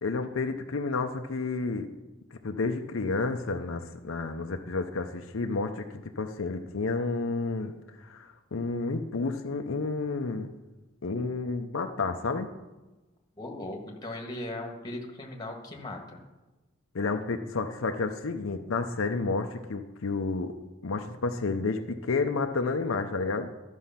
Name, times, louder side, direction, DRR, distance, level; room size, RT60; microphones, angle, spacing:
voice 1, 0.0-1.9 2.3-7.7 8.0-10.5 11.0-12.5 16.9-20.5 20.8-23.5, left 3 dB, 80° left, 5 dB, 0.7 m, -30 dB
voice 2, 13.4-16.2, left 1 dB, 20° left, 1 dB, 1.5 m, -38 dB
12.5 x 6.3 x 5.7 m, 1.1 s
head